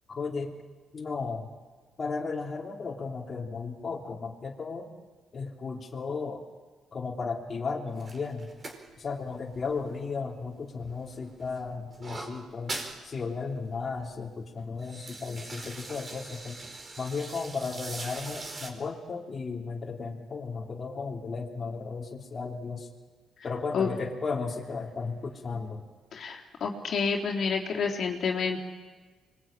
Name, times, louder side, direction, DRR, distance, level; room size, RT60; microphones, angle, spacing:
voice 1, 0.1-0.5 0.9-1.5 2.0-4.9 5.3-6.4 6.9-8.5 9.0-12.7 13.0-16.6 17.0-22.9 23.4-25.8, left 4 dB, 40° left, -1 dB, 3.2 m, -35 dB
sound 1, 7.9-10.5 10.8-13.0 13.4-13.5 13.7-14.1 14.6-18.7, right 2 dB, 35° right, 4.9 m, -42 dB
voice 2, 26.1-28.6, left 5 dB, 60° left, 0 dB, 3.5 m, -29 dB
25.5 x 22.0 x 8.9 m, 1.4 s
cardioid pair, 90°, 0 cm